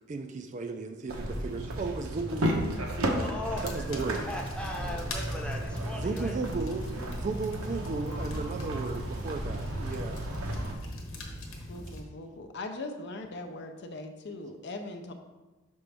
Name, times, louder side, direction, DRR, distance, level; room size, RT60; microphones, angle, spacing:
voice 1, 0.1-2.8 3.6-4.3 6.0-10.3, right 4 dB, 35° right, 6 dB, 0.3 m, -35 dB
sound 1, 1.1-10.7, right 1 dB, 85° right, 0.9 m, -33 dB
voice 2, 3.2-3.9 4.3-6.4, equal, 5° left, 0 dB, 0.7 m, -38 dB
sound 2, 3.6-12.0, left 1 dB, 75° left, 1.1 m, -43 dB
voice 3, 11.7-15.1, left 2 dB, 55° left, 5 dB, 0.6 m, -40 dB
5.9 x 5.2 x 3.4 m, 1.1 s
head